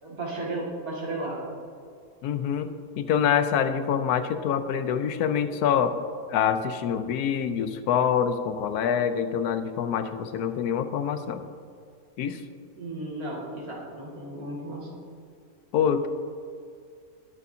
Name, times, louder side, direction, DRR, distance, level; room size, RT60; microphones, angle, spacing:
voice 1, 0.0-1.6 12.7-15.0, right 2 dB, 70° right, -4 dB, 2.5 m, -34 dB
voice 2, 2.2-6.0 6.3-11.4 12.2-12.4 15.7-16.1, left 8 dB, 85° left, 10 dB, 1.2 m, -25 dB
19.0 x 6.9 x 2.7 m, 2.3 s
omnidirectional pair, 1.6 m